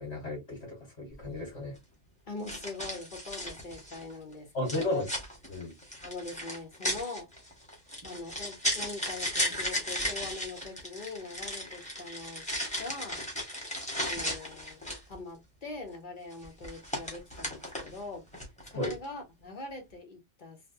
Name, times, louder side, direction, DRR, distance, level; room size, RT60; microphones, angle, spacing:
voice 1, 0.0-1.8 4.5-5.1 5.5-5.7 18.7-18.9, left 2 dB, 60° left, 1.9 m, -34 dB
sound 1, 1.1-1.3 2.5-4.1 4.7-15.1 16.3-18.0 18.3-19.0, equal, 5° left, 1.2 m, -35 dB
voice 2, 2.3-5.0 6.0-7.3 8.0-12.5 12.8-13.2 14.0-14.8 15.1-18.2 18.7-20.6, left 3 dB, 45° left, 1.2 m, -42 dB
3.9 x 2.2 x 2.7 m
omnidirectional pair, 1.3 m